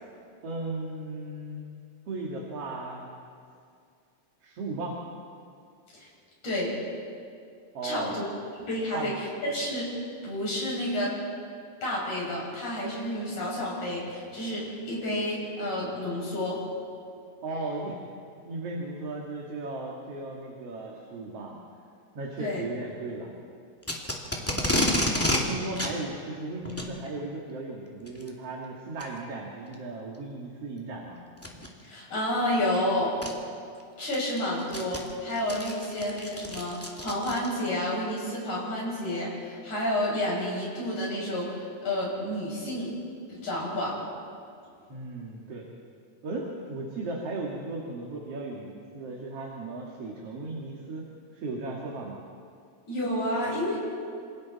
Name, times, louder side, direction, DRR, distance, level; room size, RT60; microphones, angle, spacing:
voice 1, 0.4-1.6 2.1-3.1 4.4-5.0 7.7-8.1 8.9-9.1 17.4-18.0 18.4-21.6 22.1-23.3 24.4-24.9 25.3-31.2 44.9-45.7 46.2-52.2, right 2 dB, 55° right, -2 dB, 3.1 m, -36 dB
voice 2, 6.4-6.8 7.8-8.2 8.6-9.9 10.2-11.1 11.8-16.6 22.4-22.6 31.8-33.2 34.0-42.9 43.3-44.0 52.9-54.0, left 1 dB, 75° left, -5 dB, 8.2 m, -30 dB
Packing tape duct tape, 23.8-25.4 25.8-25.9 26.6-26.9 28.1-28.3 29.0-29.1 29.7-29.8 31.4-31.7 32.7-32.8 33.2-33.3 33.8-37.7, left 1 dB, 5° left, 2.0 m, -29 dB
28.0 x 27.0 x 4.2 m, 2.3 s
omnidirectional pair, 3.4 m